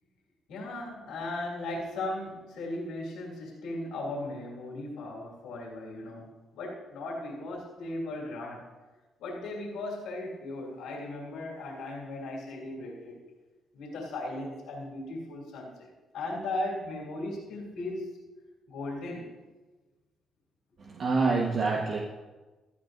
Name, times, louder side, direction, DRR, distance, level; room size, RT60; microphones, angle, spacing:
voice 1, 0.5-6.3 6.5-8.6 9.2-13.1 13.7-15.9 16.1-18.2 18.7-19.3, left 2 dB, 90° left, -3 dB, 2.7 m, -37 dB
voice 2, 20.8-22.0, right 4 dB, 55° right, 0 dB, 1.3 m, -26 dB
16.5 x 12.0 x 2.6 m, 1.2 s
cardioid pair, 90°, 0 cm